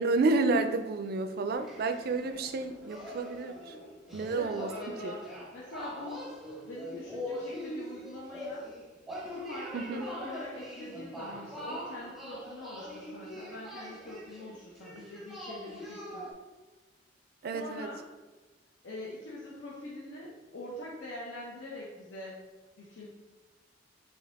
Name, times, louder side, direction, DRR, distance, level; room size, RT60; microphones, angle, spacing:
voice 1, 0.0-3.7 4.1-4.7 5.0-5.1 9.7-10.1 17.4-17.9, right 3 dB, 55° right, 8 dB, 0.3 m, -30 dB
sound 1, 1.5-16.3, equal, ahead, 0.6 m, -43 dB
voice 2, 4.3-5.3 5.5-6.3 6.7-8.7 9.3-16.3 17.5-18.1 18.8-22.4 22.8-23.1, left 1 dB, 80° left, -5 dB, 0.7 m, -43 dB
4.5 x 2.7 x 3.5 m, 1.3 s
head